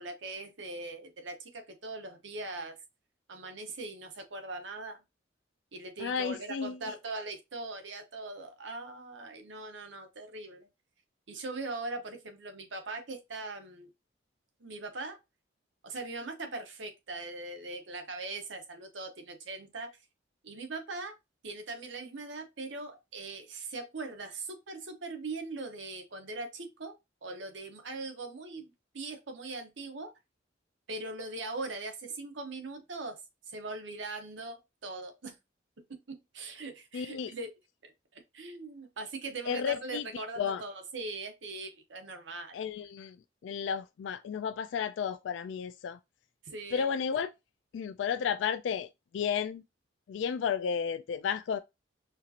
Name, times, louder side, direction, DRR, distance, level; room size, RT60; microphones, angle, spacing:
voice 1, 0.0-2.8 3.3-5.0 5.7-10.7 11.3-13.9 14.6-15.2 15.8-20.0 20.4-21.1 21.4-26.9 27.2-30.1 30.9-33.2 33.5-35.4 36.1-37.5 37.8-42.6 46.4-47.0, right 3 dB, 85° right, 1.0 m, -41 dB
voice 2, 6.0-6.8 36.9-37.3 39.5-40.1 40.4-40.6 42.5-43.2 43.4-46.0 46.7-47.3 47.7-49.6 50.1-51.6, left 7 dB, 80° left, 0.3 m, -32 dB
4.4 x 2.8 x 2.5 m
head